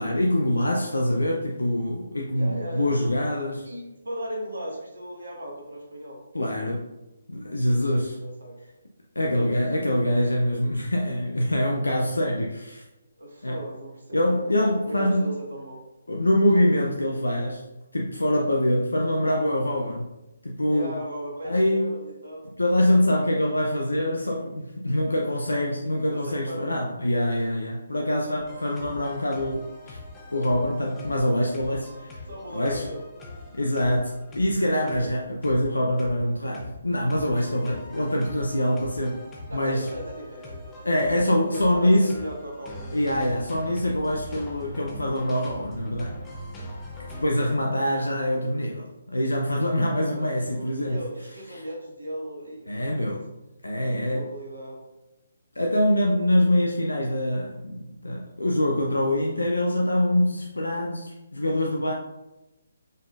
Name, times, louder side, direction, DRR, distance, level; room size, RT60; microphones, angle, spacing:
voice 1, 0.0-3.7 6.3-6.9 7.3-8.2 9.2-12.8 13.4-13.6 14.1-15.3 16.1-17.6 17.9-20.1 20.4-20.9 21.4-21.9 22.6-30.0 30.3-32.2 32.5-32.8 33.5-39.2 39.5-39.9 40.8-42.1 42.9-46.2 47.2-51.0 51.5-51.6 52.7-53.3 53.6-54.3 55.6-61.9, left 1 dB, 80° left, 0 dB, 0.6 m, -24 dB
voice 2, 2.3-2.9 3.6-6.2 7.7-8.6 9.3-9.9 13.2-15.8 20.7-22.5 23.2-23.5 25.0-25.5 25.8-26.7 27.9-28.2 32.3-33.0 34.8-35.2 37.6-37.8 39.5-40.8 41.5-42.9 47.1-47.2 49.9-53.2 53.9-54.8, equal, 75° right, -1 dB, 1.6 m, -38 dB
sound 1, 28.4-47.2, left 1 dB, 15° left, 0.8 m, -42 dB
5.5 x 3.7 x 2.5 m, 0.96 s
figure-of-eight pair, 140°, 0 cm